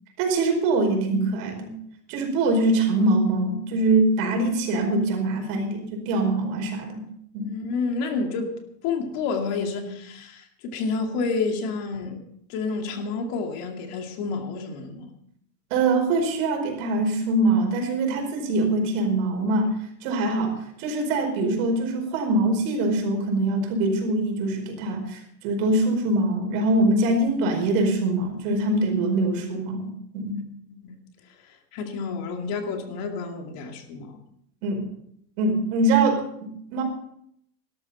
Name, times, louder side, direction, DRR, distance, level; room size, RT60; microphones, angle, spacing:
voice 1, 0.2-1.7 2.1-7.0 7.3-7.5 15.7-19.8 20.0-30.4 34.6-34.8 35.4-36.8, right 2 dB, 55° right, 3 dB, 4.9 m, -23 dB
voice 2, 7.4-12.2 12.5-15.1 30.2-30.4 30.8-30.9 31.7-34.2, left 4 dB, 45° left, 4 dB, 2.5 m, -29 dB
18.5 x 13.0 x 4.2 m, 0.71 s
supercardioid pair, 140°, 49 cm